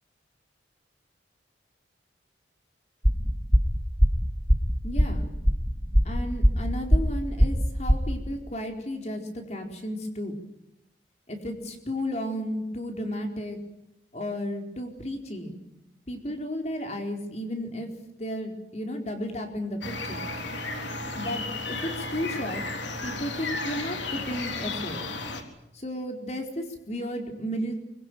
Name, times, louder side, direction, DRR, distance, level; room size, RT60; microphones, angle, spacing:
sound 1, 3.0-8.1, equal, 10° right, 2.3 m, -21 dB
voice 1, 4.8-5.3 6.0-10.3 11.3-13.6 14.1-15.6 16.1-17.9 18.2-20.2 21.2-22.6 23.0-25.0 25.7-27.7, equal, 35° left, 4 dB, 4.4 m, -33 dB
sound 2, 19.8-25.4, left 3 dB, 85° left, 3.7 m, -33 dB
24.5 x 22.5 x 9.4 m, 0.86 s
head